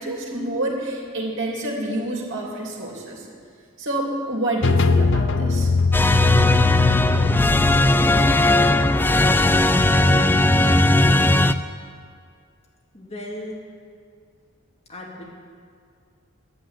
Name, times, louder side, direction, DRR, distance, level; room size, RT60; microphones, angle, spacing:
voice 1, 0.0-3.3 3.8-5.7, right 1 dB, 60° right, -2 dB, 3.0 m, -28 dB
sound 1, 4.6-10.3, left 4 dB, 60° left, 0.6 m, -21 dB
sound 2, 5.9-11.5, left 1 dB, 10° left, 0.3 m, -18 dB
voice 2, 12.9-13.6 14.9-15.2, left 1 dB, 30° left, -4 dB, 2.7 m, -35 dB
10.5 x 10.0 x 9.9 m, 2.2 s
head